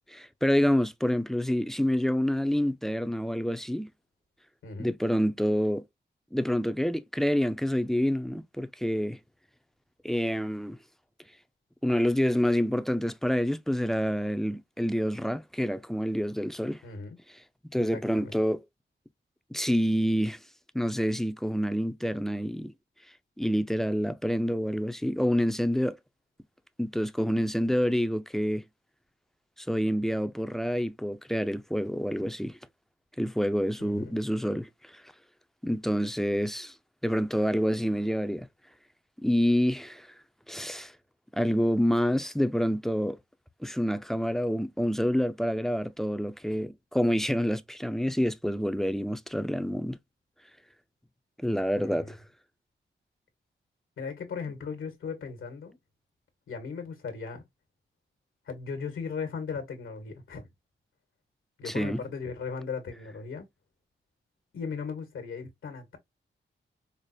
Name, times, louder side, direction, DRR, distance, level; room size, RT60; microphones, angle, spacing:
voice 1, 0.1-3.9 4.8-5.8 6.3-9.2 10.0-10.8 11.8-16.8 17.7-18.6 19.5-20.4 20.7-22.7 23.4-26.0 26.8-28.6 29.7-32.6 33.2-35.0 35.6-36.7 37.0-38.5 39.2-40.1 40.5-40.9 41.3-43.2 43.6-50.0 51.4-52.2 61.6-62.0, equal, ahead, 0.4 m, -27 dB
voice 2, 4.6-4.9 16.8-17.2 17.9-18.4 33.8-34.2 51.8-52.2 54.0-55.8 56.5-57.4 58.5-60.5 61.6-63.5 64.5-66.0, left 5 dB, 85° left, 1.2 m, -37 dB
5.0 x 2.0 x 2.6 m
cardioid pair, 60°, 20 cm